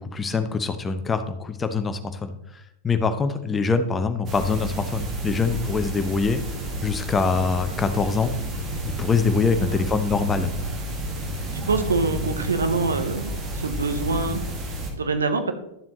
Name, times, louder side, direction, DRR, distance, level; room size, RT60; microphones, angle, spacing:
voice 1, 0.0-2.3 2.8-6.4 6.8-8.4 9.0-10.5, left 4 dB, 15° left, 9 dB, 0.8 m, -24 dB
sound 1, 4.3-14.9, right 1 dB, 30° right, 1.9 m, -31 dB
voice 2, 9.4-9.8 11.5-14.4 14.9-15.5, right 3 dB, 70° right, 8 dB, 1.0 m, -25 dB
11.5 x 7.2 x 3.1 m, 0.82 s
figure-of-eight pair, 90°, 0 cm